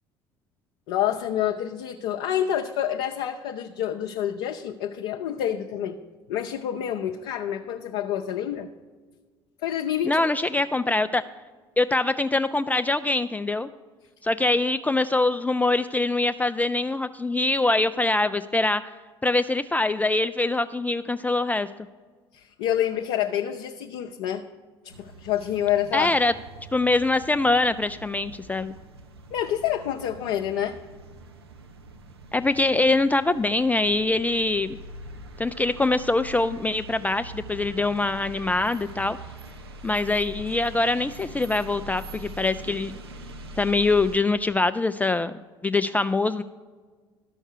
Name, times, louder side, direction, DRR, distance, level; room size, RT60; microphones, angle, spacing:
voice 1, 0.9-6.0 6.3-8.7 9.6-10.2 22.3-24.4 24.8-26.2 29.3-30.8, left 10 dB, 60° left, 3 dB, 0.6 m, -28 dB
voice 2, 10.0-11.2 11.8-13.7 14.2-18.8 19.2-21.7 25.9-26.3 26.7-28.7 32.3-34.8 35.4-39.2 39.8-42.9 43.6-45.3 45.6-46.4, left 2 dB, 10° left, 10 dB, 0.3 m, -23 dB
sound 1, 24.9-44.2, right 1 dB, 80° right, 0.7 m, -43 dB
12.5 x 5.3 x 6.6 m, 1.5 s
figure-of-eight pair, 60°, 13 cm